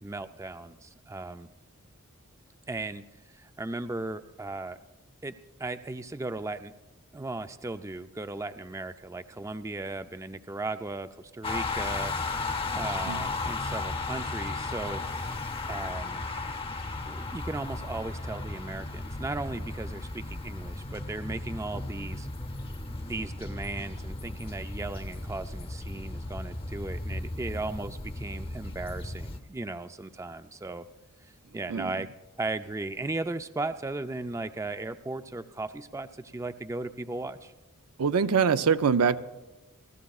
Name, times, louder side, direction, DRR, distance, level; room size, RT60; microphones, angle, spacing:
voice 1, 0.0-1.5 2.7-4.8 5.2-5.3 5.6-6.7 7.1-12.1 12.7-15.0 15.7-16.2 17.1-22.3 23.1-30.8 31.2-32.1 32.4-37.5, right 2 dB, 15° right, 10 dB, 0.3 m, -36 dB
sound 1, 11.4-29.4, left 3 dB, 25° left, 0.7 m, -35 dB
voice 2, 38.0-39.2, right 6 dB, 80° right, 12 dB, 0.5 m, -24 dB
28.5 x 14.0 x 2.4 m, 1.1 s
head